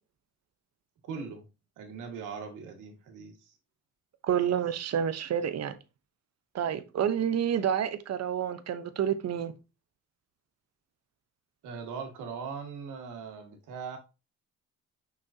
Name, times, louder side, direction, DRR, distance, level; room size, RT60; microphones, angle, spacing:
voice 1, 1.1-1.4 1.8-3.5 11.6-14.0, right 5 dB, 85° right, 2.0 m, -40 dB
voice 2, 4.2-5.8 6.5-9.5, right 9 dB, 60° right, 1.0 m, -29 dB
6.3 x 5.8 x 2.8 m
cardioid pair, 90°, 30 cm